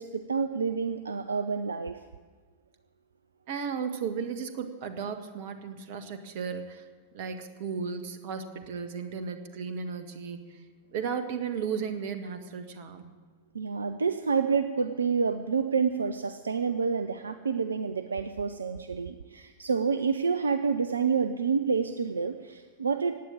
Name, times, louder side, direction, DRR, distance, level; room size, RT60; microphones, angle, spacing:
voice 1, 0.0-2.0 13.5-23.1, right 5 dB, 75° right, 10 dB, 0.6 m, -28 dB
voice 2, 3.5-6.9 7.1-10.7 10.9-13.1, right 6 dB, 50° right, 8 dB, 1.6 m, -35 dB
16.0 x 9.4 x 8.7 m, 1.4 s
figure-of-eight pair, 90°, 0 cm